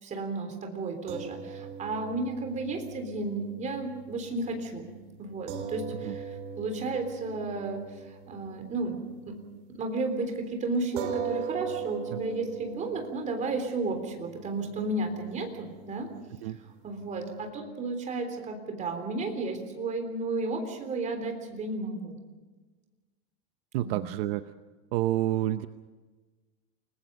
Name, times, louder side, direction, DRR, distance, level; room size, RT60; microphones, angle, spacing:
voice 1, 0.0-4.9 5.2-9.4 9.7-16.1 16.8-22.2 23.8-24.1, right 3 dB, 20° right, 5 dB, 3.6 m, -33 dB
sound 1, 1.1-9.6 9.9-10.1 11.0-17.5, right 6 dB, 85° right, 3.1 m, -41 dB
voice 2, 23.7-24.5 24.9-25.7, right 14 dB, 60° right, 11 dB, 0.8 m, -29 dB
29.0 x 20.0 x 5.3 m, 1.3 s
supercardioid pair, 160°, 33 cm